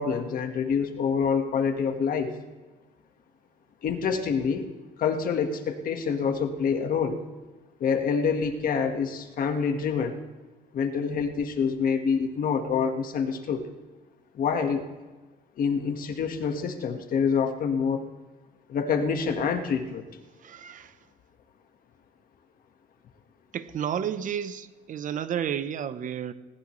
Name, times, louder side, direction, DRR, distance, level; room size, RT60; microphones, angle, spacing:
voice 1, 0.0-2.4 3.8-4.7 5.0-7.2 7.8-10.2 10.7-13.7 14.3-14.9 15.6-18.1 18.7-20.1, left 6 dB, 55° left, 1.7 m, -26 dB
voice 2, 20.4-21.0 23.5-26.3, right 9 dB, 50° right, 0.9 m, -31 dB
20.0 x 19.0 x 3.3 m
cardioid pair, 110°, 17 cm